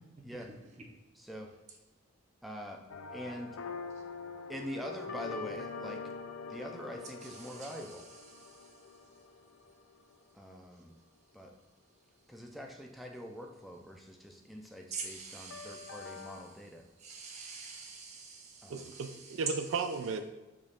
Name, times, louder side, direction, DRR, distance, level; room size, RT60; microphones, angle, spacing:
voice 1, 1.1-1.5 2.4-2.8 3.1-3.5 4.5-6.0 6.5-8.1 10.3-10.9 11.3-11.5 12.3-16.8 18.6-19.0, equal, ahead, 1 dB, 0.4 m, -44 dB
sound 1, 2.9-10.1 15.5-16.4, left 4 dB, 75° left, 0.4 m, -44 dB
voice 2, 7.4-7.8 14.9-16.3 17.0-19.4, right 5 dB, 35° right, 1 dB, 0.7 m, -46 dB
voice 3, 18.7-20.2, right 4 dB, 70° right, 8 dB, 0.3 m, -35 dB
5.0 x 2.4 x 4.2 m, 1.1 s
head